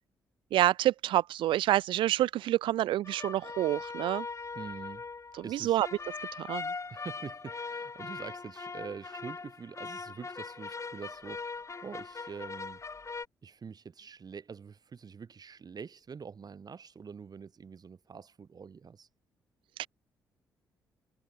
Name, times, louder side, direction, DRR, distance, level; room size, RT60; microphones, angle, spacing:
voice 1, 0.5-4.3 5.5-5.9 6.4-6.7 19.8-19.9, right 14 dB, 60° right, 0.4 m, -27 dB
sound 1, 3.0-13.3, left 4 dB, 30° left, 2.3 m, -41 dB
voice 2, 4.5-5.1 5.4-5.8 6.9-12.8 13.4-19.1, right 6 dB, 45° right, 6.2 m, -45 dB
hypercardioid pair, 45°, 10 cm